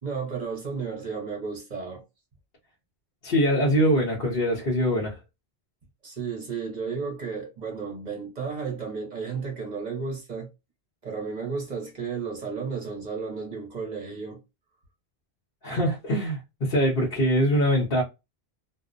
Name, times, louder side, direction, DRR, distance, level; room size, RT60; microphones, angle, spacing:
voice 1, 0.0-2.0 6.0-10.5 11.0-14.4, right 5 dB, 50° right, 0.8 m, -33 dB
voice 2, 3.2-5.2 15.6-18.0, equal, 60° left, 1.0 m, -23 dB
2.5 x 2.0 x 2.4 m
omnidirectional pair, 1.1 m